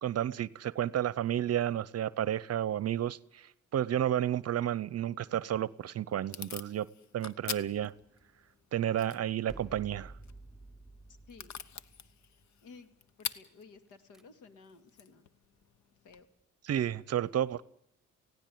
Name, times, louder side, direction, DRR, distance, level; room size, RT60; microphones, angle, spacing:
voice 1, 0.0-6.9 7.1-7.9 8.7-10.1 16.6-17.6, right 11 dB, 55° right, 21 dB, 0.7 m, -31 dB
Packing tape duct tape / Tearing, 5.4-16.2, left 8 dB, 65° left, 1.2 m, -47 dB
sound 1, 8.0-8.8 9.5-12.8 13.9-14.2, right 2 dB, ahead, 0.7 m, -52 dB
voice 2, 11.1-11.5 12.6-12.9 13.2-15.3 16.0-16.3, left 4 dB, 90° left, 11 dB, 2.2 m, -54 dB
18.5 x 17.0 x 9.3 m, 0.78 s
cardioid pair, 90°, 30 cm